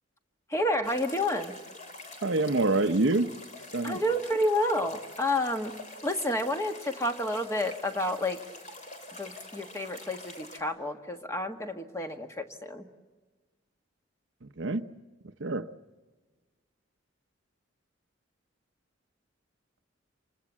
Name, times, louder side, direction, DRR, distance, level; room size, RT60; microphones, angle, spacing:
voice 1, 0.5-1.5 3.8-5.7 6.0-8.4 9.1-12.9, left 1 dB, 15° left, 5 dB, 1.5 m, -30 dB
sound 1, 0.8-10.6, left 2 dB, 35° left, 3.6 m, -46 dB
voice 2, 2.2-3.3 3.7-4.0 14.4-14.9 15.4-15.7, right 2 dB, 70° right, 7 dB, 0.8 m, -26 dB
27.5 x 24.5 x 7.4 m, 1.3 s
head